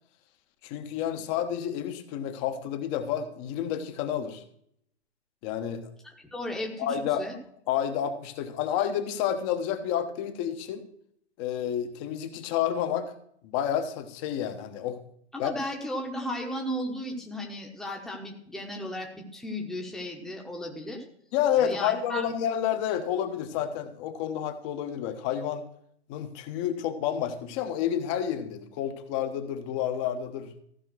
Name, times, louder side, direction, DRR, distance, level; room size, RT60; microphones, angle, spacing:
voice 1, 0.6-4.4 5.4-5.9 6.8-7.2 7.7-10.8 11.4-13.1 13.4-15.0 15.4-15.5 21.3-25.6 26.1-30.5, left 9 dB, 25° left, 8 dB, 1.2 m, -30 dB
voice 2, 6.0-6.9 7.2-7.3 15.3-21.0 21.6-22.2, equal, ahead, 0 dB, 1.2 m, -35 dB
15.0 x 5.7 x 6.1 m, 0.68 s
figure-of-eight pair, 125°, 34 cm